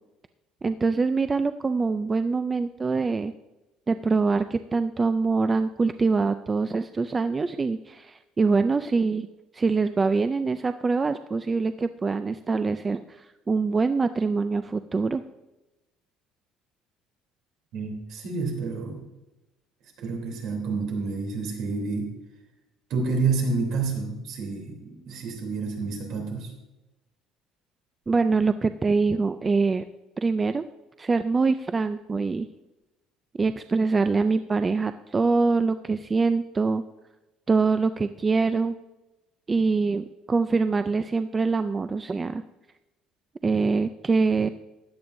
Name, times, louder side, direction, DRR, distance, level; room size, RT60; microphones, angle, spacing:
voice 1, 0.6-3.3 3.9-9.3 9.5-15.2 28.1-29.8 30.2-30.6 31.0-32.5 33.4-36.8 37.5-38.8 39.5-42.4 43.4-44.5, right 4 dB, 15° right, 10 dB, 0.3 m, -24 dB
voice 2, 17.7-19.1 20.0-22.1 22.9-26.5, right 4 dB, 55° right, 1 dB, 3.1 m, -29 dB
15.5 x 11.0 x 2.6 m, 1.0 s
cardioid pair, 165°, 0 cm